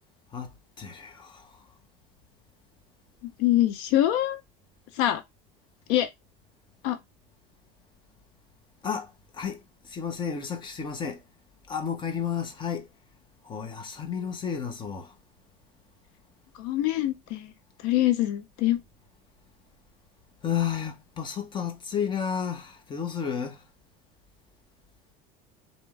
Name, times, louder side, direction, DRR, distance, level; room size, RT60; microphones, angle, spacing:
voice 1, 0.3-1.6 8.8-11.2 11.7-12.9 13.4-15.1 20.4-23.6, left 7 dB, 25° left, 1.1 m, -32 dB
voice 2, 3.4-4.4 4.9-5.2 5.9-6.1 6.8-7.0 16.6-17.5 17.8-18.8, left 13 dB, 75° left, 0.7 m, -24 dB
4.3 x 3.5 x 3.2 m
cardioid pair, 135°, 19 cm